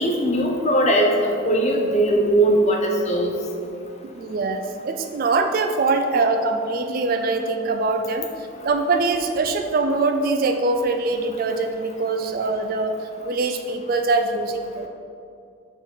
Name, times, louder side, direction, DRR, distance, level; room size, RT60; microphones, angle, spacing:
voice 1, 0.0-3.3, right 1 dB, 35° left, 1 dB, 0.7 m, -19 dB
voice 2, 4.1-8.3 8.6-13.0 13.2-14.9, right 3 dB, 45° right, 6 dB, 0.3 m, -23 dB
5.1 x 4.1 x 4.9 m, 2.5 s
head